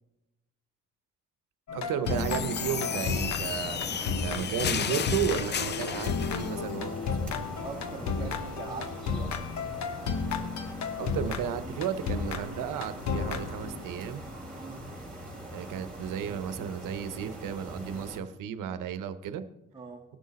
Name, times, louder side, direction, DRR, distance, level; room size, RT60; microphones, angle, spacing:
sound 1, 1.7-14.0, left 5 dB, 60° left, 1.0 m, -33 dB
voice 1, 1.7-6.9 11.0-14.2 15.5-19.4, right 8 dB, 90° right, 11 dB, 0.9 m, -33 dB
sound 2, 2.0-18.2, right 1 dB, 5° left, 3.8 m, -42 dB
sound 3, 2.1-6.5, left 8 dB, 35° left, 0.4 m, -33 dB
voice 2, 7.6-9.3 14.6-14.9 19.7-20.0, right 4 dB, 15° right, -3 dB, 1.7 m, -42 dB
18.5 x 6.4 x 4.1 m, 0.97 s
cardioid pair, 110°, 31 cm